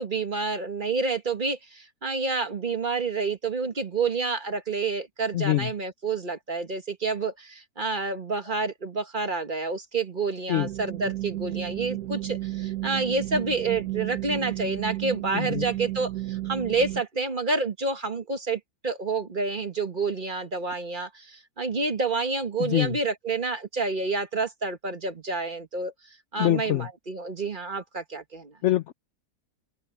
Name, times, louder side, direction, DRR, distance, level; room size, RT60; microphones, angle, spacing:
voice 1, 0.0-25.9 26.3-28.5, right 3 dB, 35° right, 1.4 m, -29 dB
voice 2, 5.3-5.7 10.5-10.7 15.3-15.6 22.6-23.0 26.4-26.9 28.6-28.9, left 14 dB, 70° left, 0.7 m, -24 dB
sound 1, 10.5-17.0, right 16 dB, 80° right, 1.7 m, -33 dB
open air
omnidirectional pair, 1.6 m